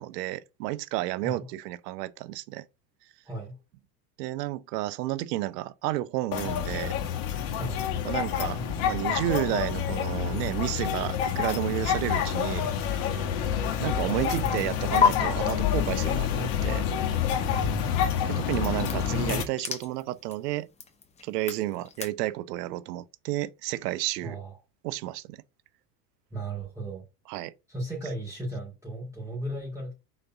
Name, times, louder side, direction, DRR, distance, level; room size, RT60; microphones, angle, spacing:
voice 1, 0.0-2.6 4.2-6.9 8.0-12.7 13.0-13.2 13.8-16.8 18.3-20.7 21.2-24.4 24.8-25.4 27.3-27.5, right 16 dB, 75° right, 0.7 m, -31 dB
voice 2, 3.2-3.6 7.6-7.8 14.3-14.7 17.5-18.1 24.2-24.6 26.3-27.0 27.7-29.9, right 2 dB, 5° right, 3.0 m, -36 dB
sound 1, 6.3-19.4, left 8 dB, 55° left, 1.4 m, -28 dB
sound 2, 13.7-15.1 18.5-22.1, left 7 dB, 15° left, 0.6 m, -32 dB
5.1 x 4.1 x 5.8 m
supercardioid pair, 120°, 48 cm